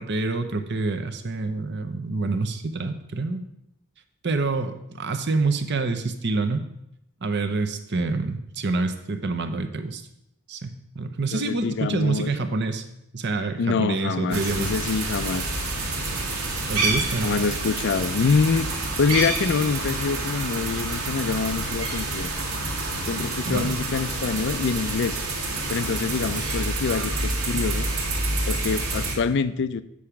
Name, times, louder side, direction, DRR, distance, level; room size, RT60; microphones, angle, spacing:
voice 1, 0.0-3.4 4.2-6.7 7.2-10.0 10.5-12.9 13.1-14.7 16.7-17.3 23.5-23.8, right 3 dB, 50° right, 8 dB, 0.7 m, -27 dB
voice 2, 11.3-12.3 13.6-15.5 17.2-22.3 23.0-25.2 25.7-27.9 28.5-29.8, left 5 dB, 50° left, 14 dB, 0.4 m, -26 dB
sound 1, 14.3-29.2, right 2 dB, 80° right, 1.8 m, -28 dB
8.5 x 4.9 x 5.8 m, 0.81 s
head